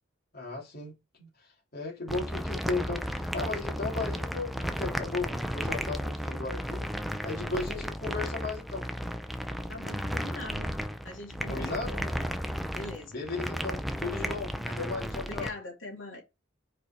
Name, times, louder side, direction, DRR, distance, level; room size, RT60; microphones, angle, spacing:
voice 1, 0.3-6.9 7.2-8.9 11.5-11.9 13.1-15.5, left 3 dB, 50° left, 2.6 m, -36 dB
sound 1, 2.1-15.5, equal, ahead, 0.6 m, -34 dB
voice 2, 9.7-10.7 11.0-12.3 12.7-13.2 14.6-14.7 15.2-16.2, left 2 dB, 85° left, 2.7 m, -42 dB
5.0 x 4.8 x 4.3 m
head